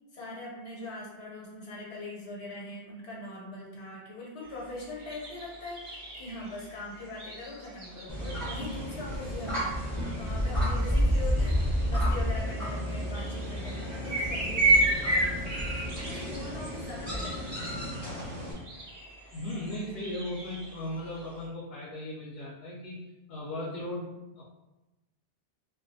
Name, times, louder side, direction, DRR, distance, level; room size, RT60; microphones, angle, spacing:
voice 1, 0.1-17.8, left 2 dB, 85° left, -4 dB, 1.1 m, -42 dB
sound 1, 4.4-21.5, right 2 dB, 45° right, 0.5 m, -34 dB
sound 2, 8.1-18.5, equal, ahead, 0.6 m, -31 dB
voice 2, 19.3-24.4, left 1 dB, 70° left, -4 dB, 0.8 m, -37 dB
2.3 x 2.3 x 2.6 m, 1.0 s
omnidirectional pair, 1.1 m